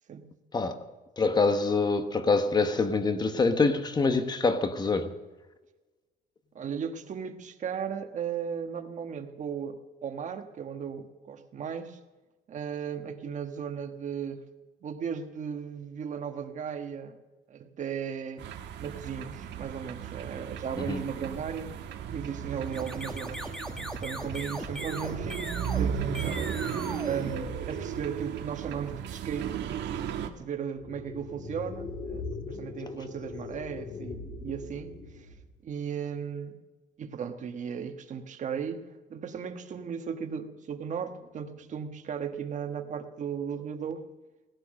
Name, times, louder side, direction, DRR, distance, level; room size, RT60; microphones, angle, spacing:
voice 1, 1.2-5.1 20.9-21.0, left 4 dB, 25° left, 1.1 m, -25 dB
voice 2, 6.5-12.0 12.5-14.5 14.8-17.2 17.5-18.4 18.8-21.7 22.1-26.5 27.0-29.8 30.4-35.3 35.6-36.6 37.0-38.8 39.1-44.0, right 7 dB, 45° right, 1.3 m, -36 dB
sound 1, 18.4-30.3, right 8 dB, 85° right, 1.4 m, -35 dB
sound 2, 22.6-28.1, equal, 5° left, 1.5 m, -39 dB
sound 3, 30.7-35.6, left 4 dB, 50° left, 2.3 m, -40 dB
17.5 x 12.5 x 6.5 m
cardioid pair, 155°, 18 cm